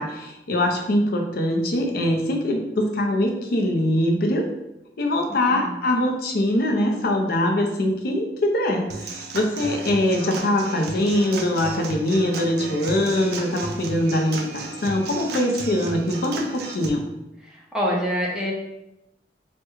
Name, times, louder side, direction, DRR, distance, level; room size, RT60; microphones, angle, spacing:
voice 1, 0.0-4.4 5.0-17.1, left 1 dB, 60° left, 2 dB, 0.5 m, -23 dB
voice 2, 5.3-5.9 17.4-18.5, equal, 5° right, -4 dB, 0.6 m, -27 dB
Human voice / Acoustic guitar / Drum, 8.9-16.9, right 3 dB, 60° right, 0.4 m, -34 dB
3.3 x 2.2 x 3.0 m, 0.89 s
head